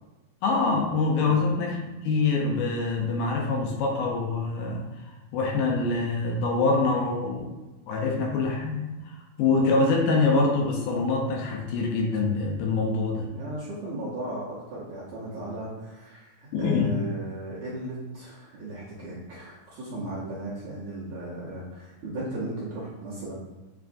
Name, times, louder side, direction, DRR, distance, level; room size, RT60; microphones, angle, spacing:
voice 1, 0.4-1.8 2.0-4.9 5.3-7.5 7.9-13.3 16.5-17.0, left 3 dB, 80° left, 0 dB, 2.2 m, -25 dB
voice 2, 13.3-23.3, right 1 dB, 70° right, -8 dB, 1.8 m, -36 dB
7.1 x 2.5 x 2.5 m, 1.1 s
omnidirectional pair, 4.1 m